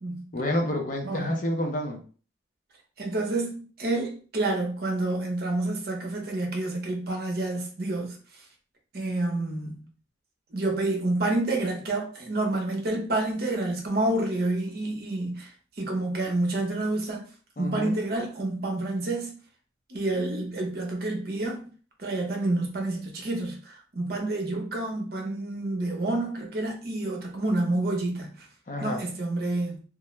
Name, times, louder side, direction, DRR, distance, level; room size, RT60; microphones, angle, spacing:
voice 1, 0.3-2.0 17.6-18.0 28.7-29.0, left 1 dB, 45° left, 0.5 m, -29 dB
voice 2, 3.0-8.2 8.9-9.9 10.5-15.5 15.8-17.2 17.6-19.3 19.9-21.7 22.0-28.5 28.8-29.8, right 2 dB, 50° right, 0.7 m, -28 dB
2.3 x 2.1 x 3.0 m
head